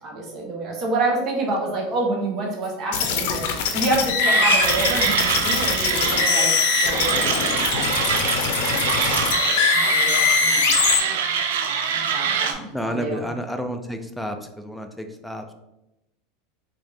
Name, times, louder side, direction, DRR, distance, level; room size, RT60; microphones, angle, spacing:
voice 1, 0.0-3.5 3.7-6.5 6.8-10.8 12.0-13.2, right 2 dB, 35° right, -1 dB, 1.0 m, -28 dB
sound 1, 2.9-11.0, left 6 dB, 70° left, 0.5 m, -22 dB
Mechanisms, 4.2-12.5, right 7 dB, 80° right, 0.4 m, -24 dB
voice 2, 12.7-15.5, equal, ahead, 5 dB, 0.4 m, -30 dB
3.6 x 2.5 x 3.3 m, 0.90 s
supercardioid pair, 135°, 0 cm